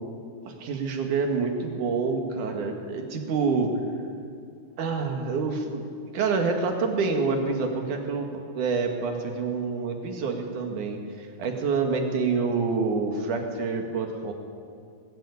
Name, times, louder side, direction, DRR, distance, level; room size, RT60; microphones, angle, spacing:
voice 1, 0.4-3.7 4.8-5.9 6.1-14.3, right 4 dB, 55° right, 4 dB, 3.2 m, -27 dB
20.5 x 16.5 x 8.4 m, 2.3 s
omnidirectional pair, 4.6 m